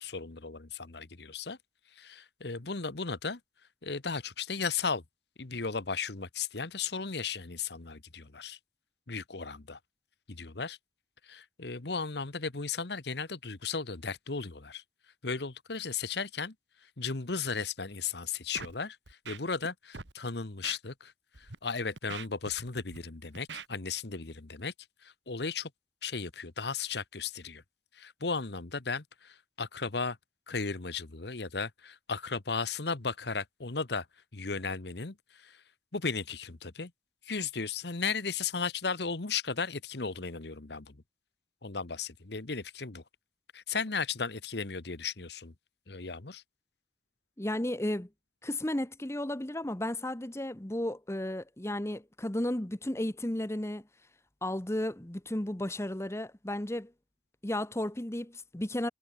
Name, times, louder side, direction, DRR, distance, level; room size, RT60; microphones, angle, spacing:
voice 1, 0.0-1.6 2.0-3.4 3.8-5.0 5.4-8.6 9.1-9.8 10.3-10.8 11.2-14.8 15.2-16.5 17.0-21.1 21.4-24.7 25.0-25.7 26.0-27.6 27.9-30.2 30.5-34.1 34.3-35.6 35.9-36.9 37.2-41.0 41.6-43.0 43.5-45.5 45.9-46.4, left 5 dB, 65° left, 1.2 m, -35 dB
Scratching (performance technique), 18.5-18.8 19.1-19.7 19.9-20.1 20.6-20.8 21.3-21.6 22.0-23.0 23.4-23.7, right 5 dB, 75° right, 2.2 m, -43 dB
voice 2, 47.4-48.1 48.4-53.8 54.4-56.9 57.4-58.9, left 1 dB, 15° left, 1.0 m, -33 dB
head